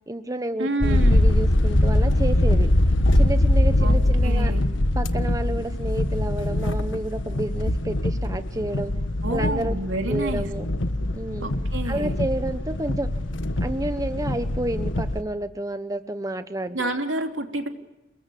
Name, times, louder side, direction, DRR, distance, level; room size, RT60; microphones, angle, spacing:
voice 1, 0.1-2.7 3.1-4.5 5.0-8.9 9.3-9.8 10.1-10.7 11.1-11.5 11.8-13.1 13.6-16.9, right 1 dB, 20° right, 9 dB, 1.1 m, -30 dB
voice 2, 0.6-1.3 3.8-4.6 9.2-10.5 11.4-12.1 16.7-17.7, right 2 dB, 85° right, 4 dB, 3.3 m, -29 dB
sound 1, 0.8-15.2, left 1 dB, 85° left, 1.5 m, -22 dB
29.5 x 21.0 x 8.7 m, 1.0 s
head